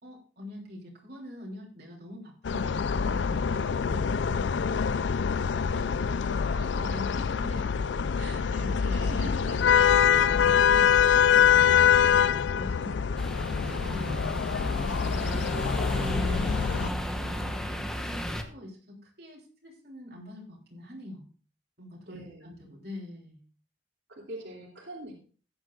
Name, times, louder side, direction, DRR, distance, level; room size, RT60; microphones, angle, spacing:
voice 1, 0.0-4.8 5.5-7.7 8.2-13.2 13.6-15.4 16.7-21.3 21.8-23.4, left 1 dB, 60° right, -2 dB, 3.3 m, -45 dB
sound 1, 2.4-16.9, left 7 dB, 85° left, 0.4 m, -24 dB
voice 2, 8.5-9.4 14.0-14.3 22.1-22.5 24.1-25.1, right 1 dB, 80° right, -3 dB, 2.7 m, -43 dB
sound 2, 13.2-18.4, equal, 5° left, 1.0 m, -33 dB
14.5 x 10.0 x 2.4 m, 0.39 s
head